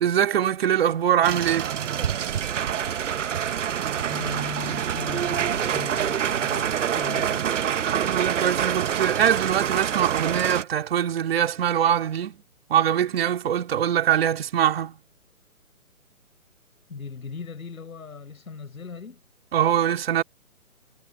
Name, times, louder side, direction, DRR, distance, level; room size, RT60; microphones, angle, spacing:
voice 1, 0.0-1.7 7.8-12.4 12.7-15.0 19.5-20.2, right 10 dB, 45° right, 4.1 m, -23 dB
sound 1, 1.2-10.6, right 9 dB, 60° right, 1.0 m, -26 dB
voice 2, 4.1-7.4 16.9-19.2, left 5 dB, 80° left, 6.9 m, -38 dB
hypercardioid pair, 155°, 42 cm